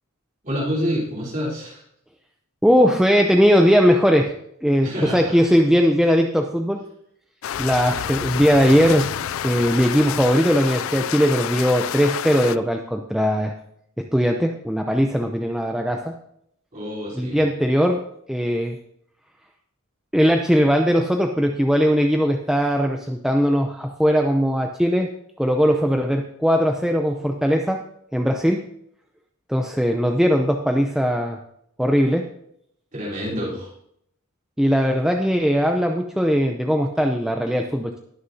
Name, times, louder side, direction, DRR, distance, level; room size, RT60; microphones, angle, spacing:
voice 1, 0.4-1.8 4.8-5.4 16.7-17.4 32.9-33.7, equal, 35° right, -5 dB, 3.8 m, -27 dB
voice 2, 2.6-4.3 4.6-6.8 7.6-9.1 9.4-13.5 14.0-16.2 17.2-18.0 18.3-18.8 20.1-25.1 25.4-27.8 28.1-28.6 29.5-31.4 31.8-32.3 33.3-33.5 34.6-38.0, equal, 5° right, 3 dB, 0.5 m, -19 dB
sound 1, 7.4-12.6, left 10 dB, 70° left, 0.3 m, -29 dB
20.0 x 6.7 x 2.7 m, 0.71 s
head